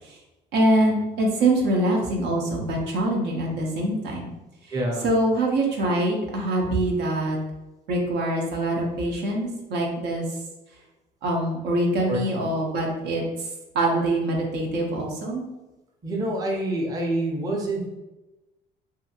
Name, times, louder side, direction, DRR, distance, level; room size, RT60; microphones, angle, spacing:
voice 1, 0.5-4.3 5.0-7.4 7.9-10.3 11.2-13.3 13.7-15.4, right 1 dB, 80° right, 0 dB, 0.7 m, -24 dB
voice 2, 4.7-5.0 12.1-12.5 16.0-17.8, right 1 dB, 20° right, -1 dB, 0.6 m, -27 dB
2.7 x 2.5 x 2.7 m, 1.0 s
cardioid pair, 110°, 17 cm